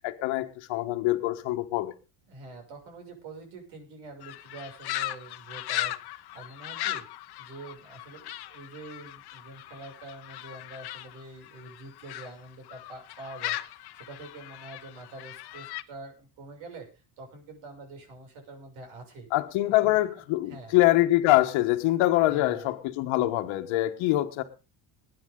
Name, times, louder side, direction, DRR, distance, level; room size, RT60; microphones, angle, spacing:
voice 1, 0.0-1.9 19.3-24.4, left 16 dB, 75° left, 1.4 m, -24 dB
voice 2, 2.3-7.0 7.4-16.9 17.2-19.3 19.7-20.0 20.5-20.8 22.3-22.7, right 2 dB, 75° right, 6.9 m, -45 dB
sound 1, 4.2-12.3 12.7-15.8, left 15 dB, 55° left, 1.0 m, -37 dB
20.5 x 9.5 x 3.8 m
cardioid pair, 125°, 47 cm